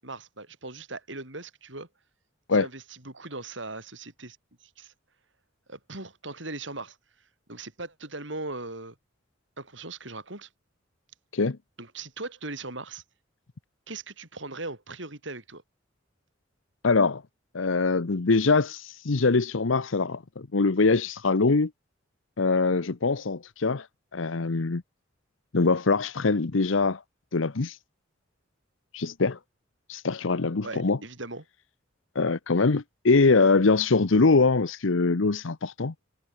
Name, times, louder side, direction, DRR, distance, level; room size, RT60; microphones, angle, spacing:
voice 1, 0.0-1.9 2.5-4.9 5.7-7.0 7.5-8.9 9.6-10.5 11.8-13.0 13.9-15.6 30.6-31.4, right 2 dB, 70° right, 6.4 m, -39 dB
voice 2, 16.8-17.2 17.5-21.7 22.4-23.9 24.1-24.8 25.5-27.0 27.3-27.8 28.9-29.4 29.9-31.0 32.1-35.9, left 3 dB, 85° left, 0.9 m, -23 dB
head